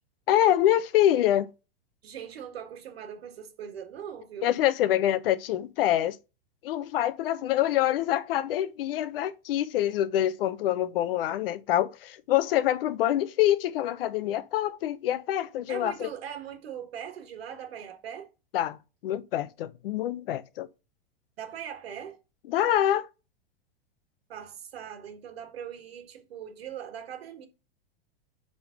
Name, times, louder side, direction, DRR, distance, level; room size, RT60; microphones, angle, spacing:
voice 1, 0.3-1.5 4.4-6.2 6.6-16.1 18.5-18.8 19.0-20.7 22.5-23.1, left 12 dB, 70° left, 0.8 m, -25 dB
voice 2, 2.0-4.5 15.7-18.3 21.4-22.2 24.3-27.5, right 8 dB, 85° right, 1.8 m, -40 dB
5.3 x 5.1 x 5.0 m
hypercardioid pair, 130°, 30 cm